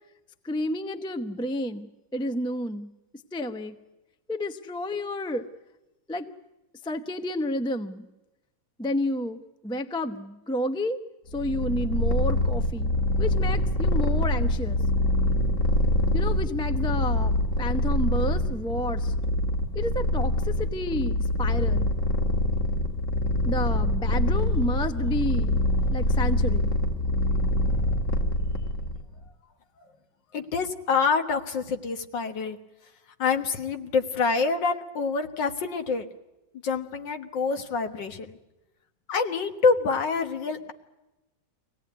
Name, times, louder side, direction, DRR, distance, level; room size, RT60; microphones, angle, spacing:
voice 1, 0.4-1.9 2.1-2.9 3.3-3.8 4.3-5.5 6.1-6.3 6.8-8.1 8.8-11.0 11.3-14.8 16.1-19.1 19.7-21.9 23.4-25.6 25.9-26.7, left 1 dB, 5° left, 8 dB, 0.4 m, -30 dB
Purr, 11.3-29.0, left 1 dB, 45° left, 2.2 m, -25 dB
voice 2, 30.3-32.6 33.2-36.1 36.6-38.4 39.1-40.7, left 4 dB, 75° left, 6 dB, 2.0 m, -26 dB
24.0 x 17.5 x 9.3 m, 1.0 s
omnidirectional pair, 2.0 m